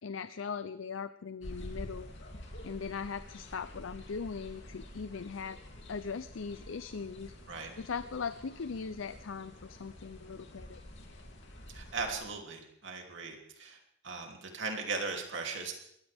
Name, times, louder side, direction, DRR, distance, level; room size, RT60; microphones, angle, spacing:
voice 1, 0.0-2.1 2.6-5.6 5.9-7.3 7.8-10.8, left 5 dB, 80° left, 13 dB, 0.5 m, -39 dB
sound 1, 1.4-12.3, left 1 dB, 60° left, 3.0 m, -49 dB
voice 2, 11.7-13.8 14.0-15.7, right 4 dB, 65° right, 2 dB, 3.0 m, -38 dB
22.0 x 16.0 x 3.6 m, 0.73 s
head